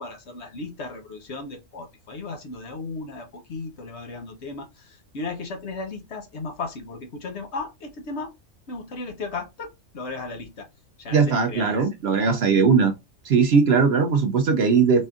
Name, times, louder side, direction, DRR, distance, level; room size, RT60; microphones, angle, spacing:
voice 1, 0.0-8.3 8.7-10.7 11.0-11.8, left 3 dB, 55° left, 1.1 m, -35 dB
voice 2, 11.1-12.9 13.2-15.1, right 5 dB, 60° right, 0.7 m, -19 dB
4.2 x 3.6 x 2.4 m
omnidirectional pair, 1.4 m